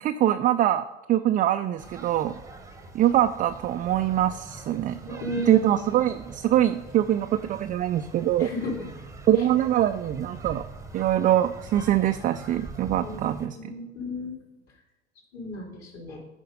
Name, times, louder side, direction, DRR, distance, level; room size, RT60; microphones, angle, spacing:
voice 1, 0.0-2.3 2.9-5.2 5.5-8.5 9.3-10.6 10.9-13.7, right 12 dB, 25° right, 8 dB, 0.3 m, -23 dB
sound 1, 1.8-13.5, right 3 dB, 10° right, 0.9 m, -43 dB
voice 2, 5.1-5.8 8.4-8.7 9.4-9.5 13.0-14.3 15.3-16.2, left 2 dB, 45° left, 0 dB, 3.4 m, -34 dB
9.4 x 5.1 x 5.3 m, 1.0 s
hypercardioid pair, 90°, 33 cm